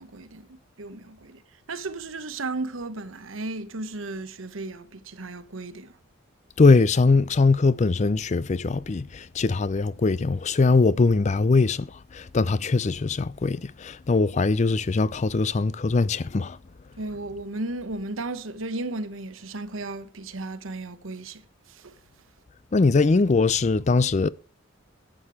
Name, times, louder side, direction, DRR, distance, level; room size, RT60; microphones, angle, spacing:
voice 1, 0.0-1.4 1.7-6.0 17.0-22.0, right 2 dB, 90° right, 1.1 m, -35 dB
voice 2, 6.6-16.6 22.7-24.3, left 3 dB, 35° left, 0.4 m, -21 dB
11.5 x 8.7 x 4.8 m
head